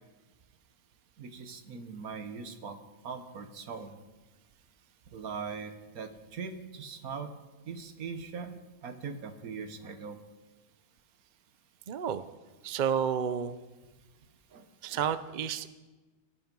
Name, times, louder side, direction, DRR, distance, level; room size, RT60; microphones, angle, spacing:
voice 1, 1.2-2.8 3.0-4.0 5.1-7.3 7.6-10.2 14.5-15.1, right 5 dB, 85° right, 8 dB, 1.7 m, -41 dB
voice 2, 11.9-12.2 12.6-13.6 14.8-15.7, right 8 dB, 45° right, 12 dB, 0.6 m, -30 dB
18.0 x 12.5 x 5.3 m, 1.2 s
omnidirectional pair, 1.5 m